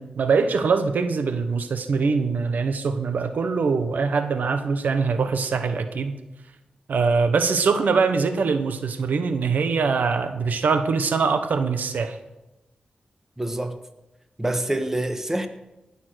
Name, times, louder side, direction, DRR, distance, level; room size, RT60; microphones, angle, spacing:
voice 1, 0.0-6.2 6.9-12.2, right 5 dB, 85° right, 1.1 m, -23 dB
voice 2, 13.4-13.8 14.4-15.5, right 1 dB, 15° right, 1.4 m, -26 dB
18.5 x 7.2 x 6.4 m
wide cardioid pair, 80°, 3 cm